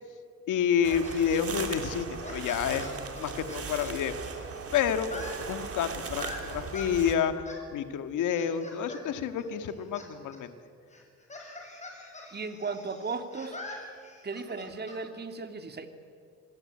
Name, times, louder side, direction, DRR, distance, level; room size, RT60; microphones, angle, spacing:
voice 1, 0.5-4.4 4.7-7.3 7.7-10.5, left 8 dB, 85° left, 9 dB, 1.9 m, -29 dB
sound 1, 0.8-7.2, right 5 dB, 50° right, 3.3 m, -38 dB
sound 2, 0.9-4.6 4.9-6.9 7.4-7.6 8.3-9.0 9.3-10.1 10.3-10.4 10.9-15.0, left 2 dB, 25° left, 7.4 m, -45 dB
voice 2, 12.3-13.6 14.2-15.9, right 4 dB, 35° right, 7 dB, 2.5 m, -36 dB
27.5 x 20.5 x 8.8 m, 2.2 s
cardioid pair, 90°, 30 cm